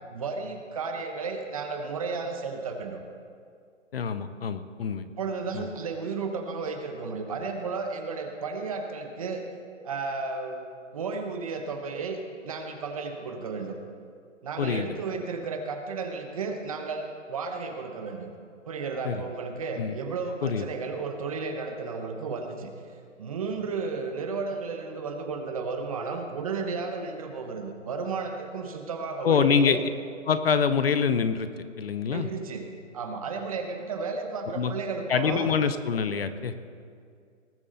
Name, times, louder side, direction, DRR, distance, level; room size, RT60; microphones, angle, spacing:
voice 1, 0.1-3.0 5.2-9.4 9.8-12.2 12.4-13.8 14.4-18.3 18.7-22.7 23.2-29.8 32.1-35.5, right 4 dB, 30° right, 5 dB, 0.9 m, -33 dB
voice 2, 3.9-5.0 5.5-5.7 14.6-14.9 19.0-19.2 19.8-19.9 20.4-20.6 29.2-29.8 30.3-31.5 31.8-32.3 34.5-34.7 35.1-36.5, left 6 dB, 50° left, 11 dB, 0.7 m, -25 dB
19.0 x 8.2 x 3.9 m, 2.2 s
hypercardioid pair, 165°, 38 cm